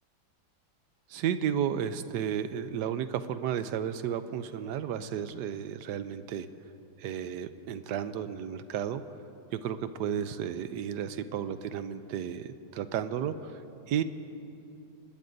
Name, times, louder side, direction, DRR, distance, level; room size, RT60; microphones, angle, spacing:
voice 1, 1.1-6.5 7.0-9.0 9.5-14.0, right 9 dB, 75° right, 11 dB, 1.0 m, -33 dB
25.0 x 19.5 x 2.6 m, 2.7 s
omnidirectional pair, 2.2 m